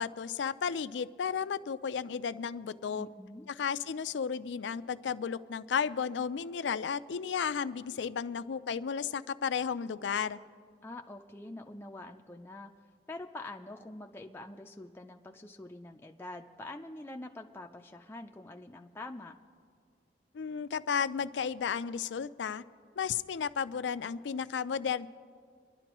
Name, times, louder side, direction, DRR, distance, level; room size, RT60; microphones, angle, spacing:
voice 1, 0.0-3.1 3.5-10.4 20.3-22.6 23.0-25.1, left 6 dB, 85° left, 15 dB, 0.4 m, -33 dB
voice 2, 2.9-3.5 10.8-12.7 13.1-19.4, left 2 dB, 15° left, 2 dB, 0.4 m, -45 dB
24.5 x 11.5 x 3.0 m, 2.1 s
head